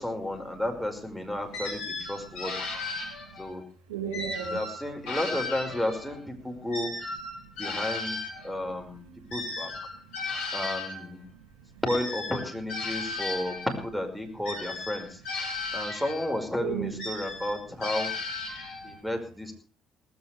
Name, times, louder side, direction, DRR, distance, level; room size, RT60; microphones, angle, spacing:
voice 1, 0.0-2.7 3.4-3.6 4.4-6.9 7.6-9.0 9.3-9.7 10.5-11.2 11.8-15.2 15.7-18.1 18.8-19.5, left 1 dB, ahead, 4 dB, 5.4 m, -32 dB
sound 1, 1.5-3.6 4.1-6.2 6.7-11.1 11.9-13.8 14.4-16.4 17.0-19.0, left 3 dB, 70° left, 6.5 m, -35 dB
voice 2, 2.1-2.6 2.9-3.4 3.9-4.6 6.5-6.6 7.3-7.5 8.4-8.9 9.2-9.5 9.9-10.5 11.2-11.8 13.0-13.2 15.5-15.8 16.6-16.9 18.5-18.9, right 8 dB, 75° right, 4 dB, 5.2 m, -40 dB
19.0 x 16.0 x 3.4 m, 0.37 s
figure-of-eight pair, 45°, 0 cm